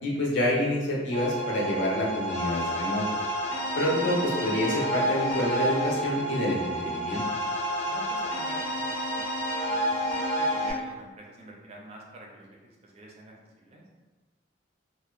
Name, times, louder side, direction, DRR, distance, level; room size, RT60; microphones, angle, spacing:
voice 1, 0.0-3.0 3.7-7.2, left 1 dB, 80° left, -4 dB, 0.6 m, -27 dB
sound 1, 1.1-10.7, equal, 40° left, 0.6 m, -30 dB
voice 2, 7.8-9.3 9.7-13.8, right 1 dB, 30° right, -1 dB, 0.3 m, -47 dB
2.5 x 2.1 x 2.3 m, 1.3 s
head